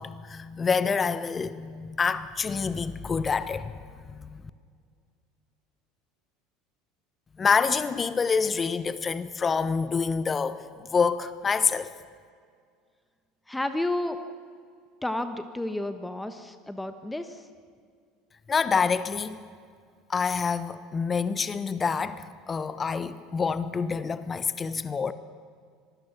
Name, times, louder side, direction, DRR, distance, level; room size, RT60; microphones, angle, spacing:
voice 1, 0.0-3.7 4.1-4.4 7.4-11.9 18.5-19.4 20.1-25.1, left 5 dB, 25° left, 1.1 m, -27 dB
voice 2, 13.5-14.3 15.0-17.5, left 1 dB, 5° left, 1.3 m, -31 dB
25.5 x 20.5 x 6.1 m
figure-of-eight pair, 70°, 0 cm